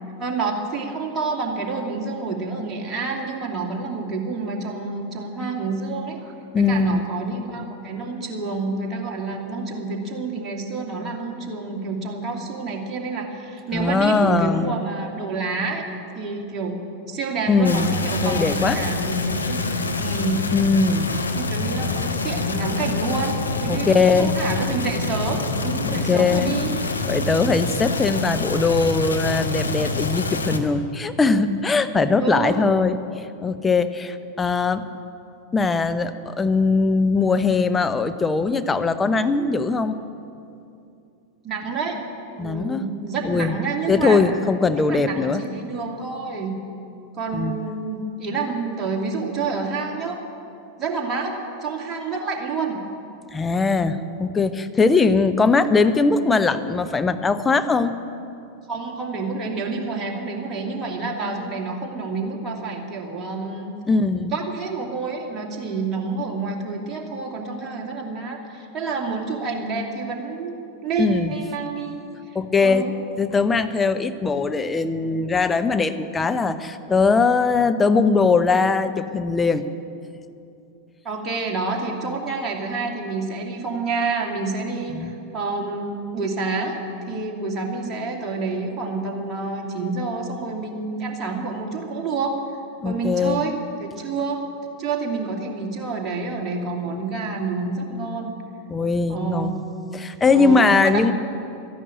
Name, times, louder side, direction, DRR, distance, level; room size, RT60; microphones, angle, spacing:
voice 1, 0.2-15.9 16.1-20.4 21.3-26.7 32.2-32.6 41.4-42.0 42.3-44.2 44.7-46.6 47.1-50.2 50.8-52.8 58.7-63.8 64.1-70.5 70.8-71.9 72.6-72.9 81.0-86.8 87.1-92.4 92.8-94.4 94.8-98.4 99.1-99.6 100.3-101.1, right 4 dB, 25° right, 0 dB, 2.5 m, -28 dB
voice 2, 6.5-7.0 13.7-14.7 17.5-17.9 18.2-18.8 20.5-21.1 23.7-24.4 25.9-26.5 27.1-34.8 35.5-40.0 42.4-42.8 43.2-43.6 43.9-45.4 47.3-47.6 53.3-57.9 63.9-64.4 71.0-71.3 72.3-72.9 73.2-79.6 84.9-85.1 92.8-93.4 98.7-99.6 99.9-101.1, left 4 dB, 15° left, 10 dB, 0.7 m, -20 dB
sound 1, 17.6-30.6, left 3 dB, 75° left, 1.1 m, -26 dB
13.0 x 11.0 x 9.1 m, 2.6 s
figure-of-eight pair, 90°, 0 cm